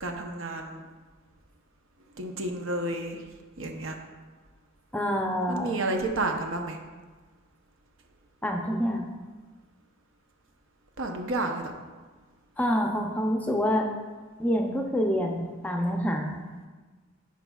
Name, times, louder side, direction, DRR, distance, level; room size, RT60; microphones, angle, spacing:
voice 1, 0.0-0.8 2.2-3.2 3.6-3.9 5.5-6.8 11.0-11.7, right 2 dB, 75° right, 3 dB, 0.8 m, -31 dB
voice 2, 4.9-5.8 8.4-9.0 12.6-13.9 14.4-16.4, equal, 10° left, 1 dB, 0.5 m, -27 dB
11.0 x 4.7 x 2.3 m, 1.4 s
head